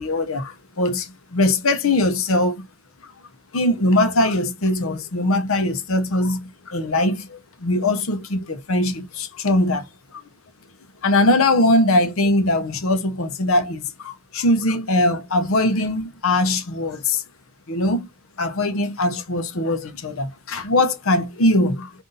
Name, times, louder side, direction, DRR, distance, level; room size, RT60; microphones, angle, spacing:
voice 1, 0.0-2.7 3.5-9.9 10.1-10.2 11.0-17.2 17.7-18.1 18.4-21.9, left 1 dB, 70° left, 0.8 m, -21 dB
3.9 x 2.7 x 3.8 m
head